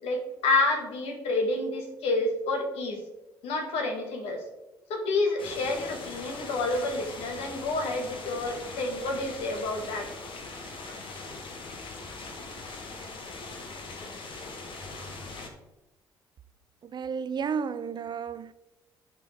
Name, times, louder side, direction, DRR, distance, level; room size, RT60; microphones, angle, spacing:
voice 1, 0.0-3.0 3.4-4.4 4.9-10.1, left 2 dB, 70° left, 1.6 m, -29 dB
sound 1, 5.4-15.5, left 3 dB, 55° left, 1.4 m, -41 dB
voice 2, 16.8-18.5, right 6 dB, 45° right, 0.5 m, -32 dB
11.0 x 3.9 x 4.3 m
hypercardioid pair, 50°, 11 cm